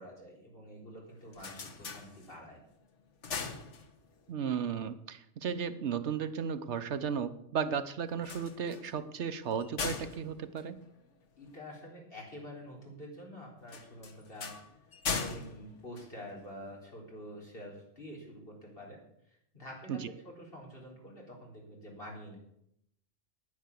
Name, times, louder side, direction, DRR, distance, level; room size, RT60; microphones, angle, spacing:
voice 1, 0.0-2.6 11.4-14.5 15.1-19.0 19.3-22.4, equal, 50° left, -2 dB, 4.2 m, -47 dB
sound 1, 1.1-2.6 3.0-4.3 8.1-11.6 13.7-16.7, left 5 dB, 80° left, 1.7 m, -40 dB
voice 2, 4.3-10.8 19.9-20.1, right 7 dB, 75° right, 12 dB, 1.1 m, -35 dB
9.9 x 9.5 x 8.3 m, 0.76 s
omnidirectional pair, 1.2 m